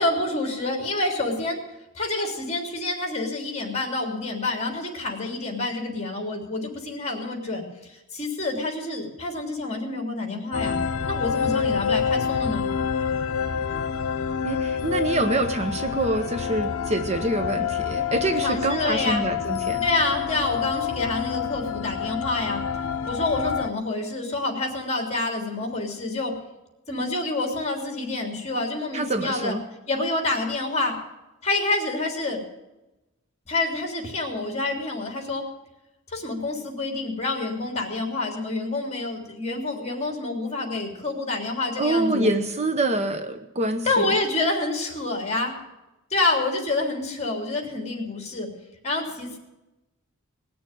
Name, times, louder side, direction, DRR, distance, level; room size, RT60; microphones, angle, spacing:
voice 1, 0.0-1.6 1.9-10.8 11.1-12.6 18.4-19.2 19.8-22.6 23.1-26.3 26.9-29.6 29.9-30.9 31.4-32.4 33.5-35.4 36.1-42.3 43.8-45.5 46.1-48.5 48.8-49.4, left 2 dB, 30° left, 3 dB, 3.2 m, -27 dB
sound 1, 10.5-23.7, left 6 dB, 80° left, 0.7 m, -27 dB
voice 2, 14.4-19.9 28.9-29.6 41.8-44.1, right 2 dB, 30° right, 8 dB, 0.9 m, -26 dB
19.5 x 6.9 x 9.1 m, 0.99 s
head